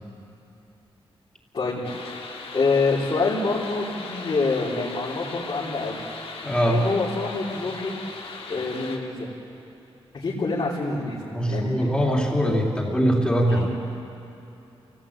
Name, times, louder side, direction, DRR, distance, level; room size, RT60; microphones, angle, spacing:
voice 1, 1.5-1.8 2.5-6.0 6.7-7.9 8.5-9.3 10.1-11.2 11.5-11.7 13.5-13.7, left 3 dB, 55° left, -8 dB, 4.2 m, -26 dB
sound 1, 1.8-9.0, left 4 dB, 80° left, 2.4 m, -38 dB
voice 2, 6.4-6.8 11.3-13.7, equal, 10° left, -3 dB, 3.3 m, -22 dB
27.5 x 18.0 x 8.8 m, 3.0 s
wide cardioid pair, 120°, 10 cm